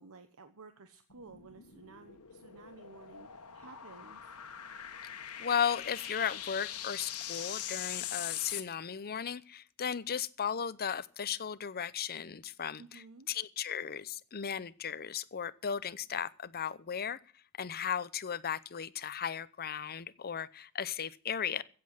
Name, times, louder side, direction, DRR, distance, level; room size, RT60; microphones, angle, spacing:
voice 1, 0.0-4.3 12.8-13.3, right 4 dB, 65° right, 8 dB, 1.1 m, -54 dB
sound 1, 1.1-8.6, left 11 dB, 80° left, 1.5 m, -42 dB
voice 2, 5.4-17.2 17.6-21.6, left 7 dB, 45° left, 17 dB, 0.7 m, -36 dB
16.0 x 7.7 x 7.8 m, 0.42 s
head